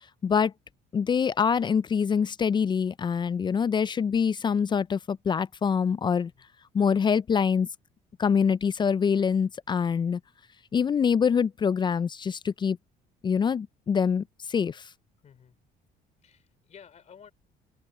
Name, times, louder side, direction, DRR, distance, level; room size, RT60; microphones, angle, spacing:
voice 1, 0.2-0.5 0.9-6.3 6.7-7.7 8.2-10.2 10.7-12.8 13.2-14.9, left 6 dB, 25° left, 0.4 m, -25 dB
voice 2, 15.2-15.6 16.2-17.3, left 7 dB, 45° left, 3.2 m, -52 dB
open air
cardioid pair, 110°, 17 cm